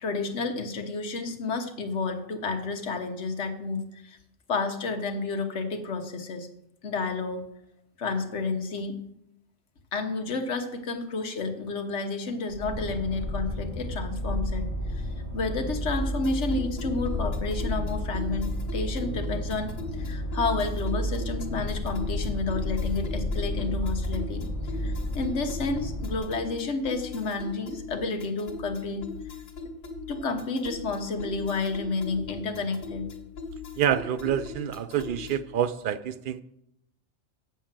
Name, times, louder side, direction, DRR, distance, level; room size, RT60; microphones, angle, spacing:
voice 1, 0.0-4.2 4.5-6.5 6.8-7.4 8.0-9.0 9.9-14.7 14.9-15.1 15.3-24.4 24.7-29.0 30.1-33.1, left 3 dB, 65° left, 5 dB, 1.4 m, -30 dB
sound 1, 12.5-26.2, left 1 dB, 20° left, 2.4 m, -31 dB
sound 2, 16.0-35.5, left 4 dB, 80° left, 1.7 m, -40 dB
voice 2, 33.8-36.4, right 9 dB, 60° right, 13 dB, 0.5 m, -27 dB
7.5 x 7.2 x 7.3 m, 0.80 s
omnidirectional pair, 1.3 m